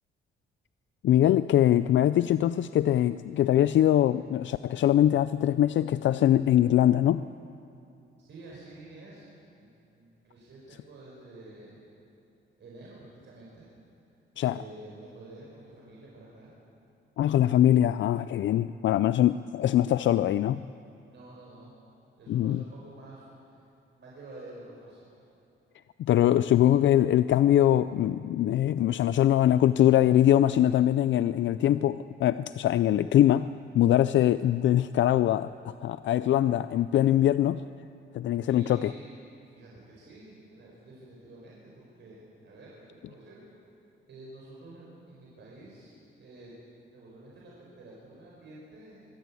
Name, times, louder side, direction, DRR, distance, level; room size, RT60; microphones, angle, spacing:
voice 1, 1.0-7.3 14.4-14.6 17.2-20.6 22.3-22.6 26.0-33.5 33.7-37.6 38.1-38.9, left 12 dB, 65° left, 14 dB, 0.4 m, -23 dB
voice 2, 8.2-9.3 9.5-11.9 12.6-12.9 13.2-13.7 14.4-16.5 21.1-21.7 22.2-23.6 23.9-25.1 38.4-39.1 39.5-43.4 44.1-46.5 46.9-49.0, right 2 dB, 60° right, -5 dB, 5.0 m, -49 dB
24.0 x 12.5 x 8.5 m, 2.8 s
cardioid pair, 110°, 21 cm